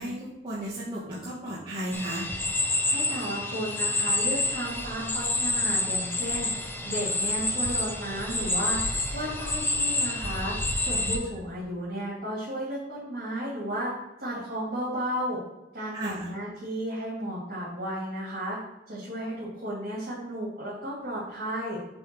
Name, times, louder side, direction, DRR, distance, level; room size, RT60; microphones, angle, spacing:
voice 1, 0.0-2.3 15.9-16.3, right 1 dB, 30° right, -9 dB, 1.7 m, -34 dB
sound 1, 1.9-11.2, left 2 dB, 10° left, 0.8 m, -28 dB
voice 2, 2.7-8.8 9.1-10.5 10.8-13.9 14.2-15.4 15.7-18.6 18.9-21.8, equal, 65° right, -8 dB, 2.8 m, -33 dB
7.8 x 3.5 x 6.3 m, 1.0 s
head